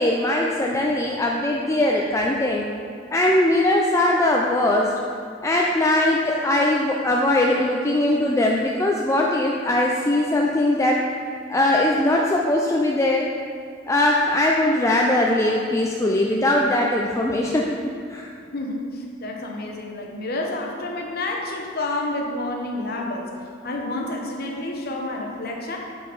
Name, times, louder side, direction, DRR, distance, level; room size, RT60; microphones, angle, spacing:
voice 1, 0.0-2.6 3.1-4.9 5.4-11.0 11.5-13.3 13.9-17.7 18.1-18.3, left 1 dB, 15° left, -2 dB, 0.4 m, -20 dB
voice 2, 18.5-23.4 23.6-25.8, left 2 dB, 55° left, 0 dB, 0.9 m, -29 dB
7.3 x 5.5 x 4.0 m, 2.4 s
head